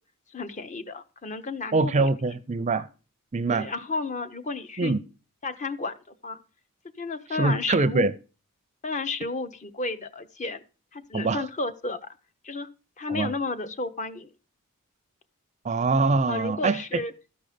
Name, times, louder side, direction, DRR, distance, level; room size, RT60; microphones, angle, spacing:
voice 1, 0.3-2.1 3.5-4.9 5.4-5.9 6.2-6.4 7.0-8.1 8.8-10.6 10.9-12.0 12.4-12.7 13.0-14.3 16.3-17.1, left 3 dB, 30° left, 0.7 m, -32 dB
voice 2, 1.7-2.9 3.3-3.7 4.8-5.0 7.3-8.1 11.1-11.5 13.1-13.3 15.6-16.8, right 3 dB, 30° right, 0.4 m, -24 dB
13.5 x 5.3 x 5.0 m
head